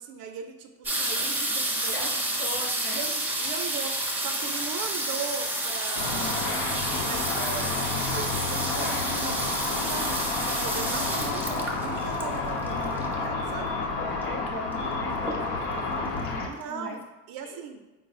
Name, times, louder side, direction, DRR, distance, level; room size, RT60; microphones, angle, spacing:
voice 1, 0.0-2.1 2.9-6.5 7.0-9.4 9.9-13.8 16.5-17.0 17.3-17.8, right 6 dB, 55° right, 6 dB, 0.5 m, -39 dB
sound 1, 0.8-13.4 14.2-14.3 14.5-14.9 15.2-15.8 16.3-16.4 16.6-16.7, right 1 dB, 5° right, 0.5 m, -30 dB
voice 2, 1.9-3.1 9.2-9.5 14.0-17.0 17.4-17.7, left 2 dB, 30° left, 1 dB, 0.7 m, -40 dB
Car / Traffic noise roadway noise / Engine, 5.9-16.5, left 3 dB, 90° left, 0.8 m, -30 dB
3.8 x 2.0 x 4.1 m, 1.2 s
supercardioid pair, 105°, 43 cm